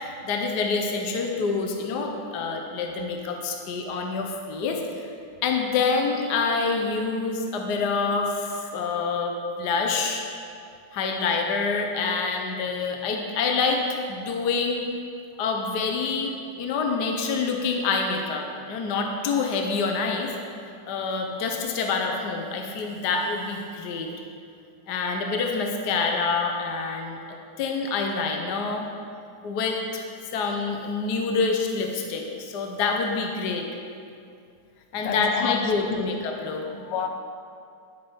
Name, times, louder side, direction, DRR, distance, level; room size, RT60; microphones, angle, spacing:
voice 1, 0.0-4.8 5.4-10.2 10.9-14.8 15.4-20.3 20.9-24.1 24.9-27.2 27.6-28.9 29.4-30.1 30.3-33.6 34.9-36.6, left 4 dB, 60° left, 2 dB, 1.3 m, -26 dB
voice 2, 35.0-36.0 36.7-37.1, left 5 dB, 90° left, 5 dB, 1.8 m, -30 dB
11.0 x 8.5 x 5.6 m, 2.5 s
omnidirectional pair, 2.3 m